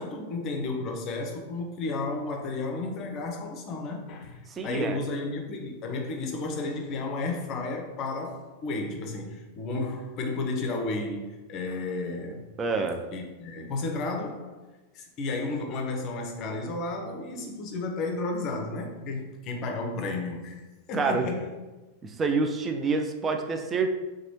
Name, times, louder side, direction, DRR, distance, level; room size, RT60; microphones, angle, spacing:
voice 1, 0.0-12.5 13.1-14.6 14.9-21.5, left 3 dB, 35° left, 2 dB, 0.5 m, -33 dB
voice 2, 4.5-5.0 12.6-13.0 20.9-21.3 22.0-23.9, right 4 dB, 20° right, 5 dB, 0.3 m, -27 dB
2.9 x 2.2 x 2.9 m, 1.2 s
figure-of-eight pair, 90°, 0 cm